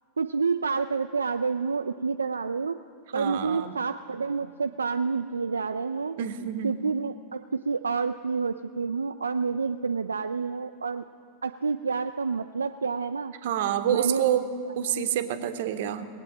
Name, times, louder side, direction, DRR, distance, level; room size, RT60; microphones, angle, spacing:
voice 1, 0.2-2.8 3.1-6.2 6.6-11.0 11.4-13.3 13.9-14.2, right 5 dB, 75° right, 7 dB, 0.3 m, -28 dB
voice 2, 3.1-3.8 6.2-6.7 13.4-14.5 14.7-16.1, right 10 dB, 55° right, 10 dB, 0.8 m, -27 dB
19.0 x 8.4 x 7.4 m, 2.2 s
figure-of-eight pair, 90°, 0 cm